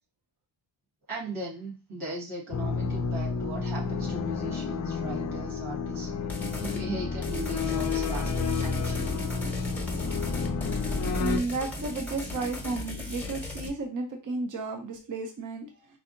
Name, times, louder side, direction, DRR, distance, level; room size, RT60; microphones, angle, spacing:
voice 1, 1.1-9.2, right 2 dB, 90° right, -4 dB, 1.8 m, -38 dB
sound 1, 2.5-11.4, left 4 dB, 40° left, 0.4 m, -30 dB
sound 2, 6.3-6.8 7.2-13.7, left 1 dB, 5° left, 0.8 m, -37 dB
voice 2, 11.2-15.7, right 3 dB, 40° right, 4 dB, 0.7 m, -33 dB
4.6 x 2.7 x 2.5 m, 0.32 s
wide cardioid pair, 125°, 48 cm